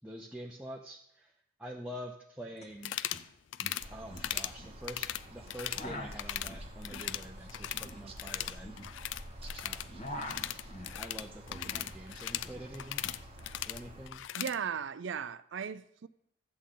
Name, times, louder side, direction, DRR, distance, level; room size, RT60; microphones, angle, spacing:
voice 1, 0.0-1.3 1.6-3.0 3.9-8.8 9.6-10.0 10.9-13.1 13.7-14.2, equal, 5° right, 0.6 m, -46 dB
sound 1, 2.6-2.7 2.9-3.3 3.6-4.8 5.5-9.4 9.7-12.0 12.2-13.2, left 1 dB, 35° left, 1.3 m, -45 dB
sound 2, 2.8-3.2 3.5-3.9 4.2-4.5 4.8-5.9 6.1-6.5 6.8-7.9 8.2-14.6, left 13 dB, 60° left, 0.3 m, -38 dB
sound 3, 3.8-14.1, right 1 dB, 30° right, 0.9 m, -49 dB
voice 2, 14.3-16.1, right 7 dB, 60° right, 0.4 m, -37 dB
13.0 x 8.5 x 3.8 m
head